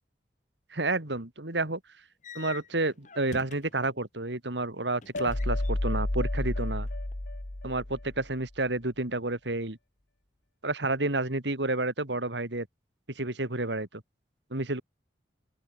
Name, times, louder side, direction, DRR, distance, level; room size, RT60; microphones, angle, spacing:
voice 1, 0.7-1.8 2.3-6.9 7.6-9.8 10.6-12.7 13.1-14.0 14.5-14.8, right 2 dB, 80° right, 3.0 m, -30 dB
sound 1, 2.2-4.0 5.0-6.0 6.3-7.1, left 4 dB, 45° left, 4.2 m, -46 dB
sound 2, 5.1-8.3, left 1 dB, 70° left, 1.8 m, -31 dB
open air
head